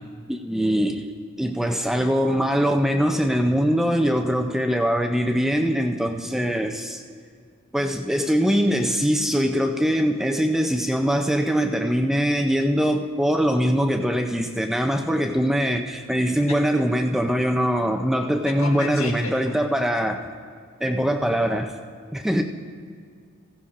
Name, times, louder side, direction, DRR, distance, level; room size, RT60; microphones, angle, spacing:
voice 1, 0.3-7.0 7.7-20.2 20.8-21.7 22.1-22.4, equal, ahead, 4 dB, 0.4 m, -22 dB
voice 2, 18.5-19.6, left 2 dB, 75° left, 0 dB, 1.7 m, -32 dB
16.0 x 15.5 x 2.5 m, 2.1 s
head